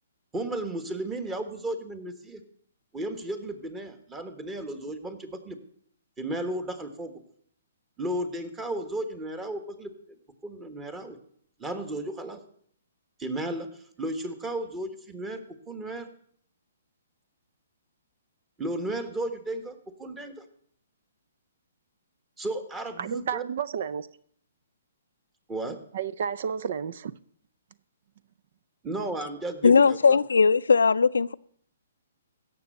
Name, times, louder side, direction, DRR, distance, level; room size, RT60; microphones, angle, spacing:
voice 1, 0.3-2.4 2.9-5.6 6.2-7.1 8.0-10.2 10.4-11.2 11.6-12.4 13.2-16.1 18.6-20.4 22.4-23.4 25.5-25.8 28.8-30.2, right 1 dB, 15° right, 1.4 m, -34 dB
voice 2, 23.0-24.1 25.9-27.1, right 7 dB, 60° right, 0.5 m, -31 dB
voice 3, 29.6-31.3, left 5 dB, 85° left, 0.4 m, -19 dB
16.0 x 6.9 x 6.4 m
hypercardioid pair, 145°, 0 cm